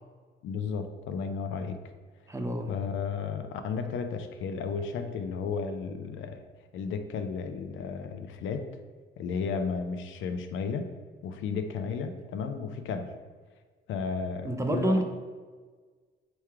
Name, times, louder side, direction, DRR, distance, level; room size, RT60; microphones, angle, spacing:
voice 1, 0.4-1.8 2.7-6.4 6.7-8.7 9.2-10.9 11.2-13.1 13.9-15.0, left 5 dB, 75° left, 7 dB, 0.5 m, -33 dB
voice 2, 2.3-2.7 14.4-15.0, right 1 dB, 15° right, 4 dB, 0.5 m, -27 dB
3.5 x 3.0 x 4.6 m, 1.5 s
cardioid pair, 90°, 20 cm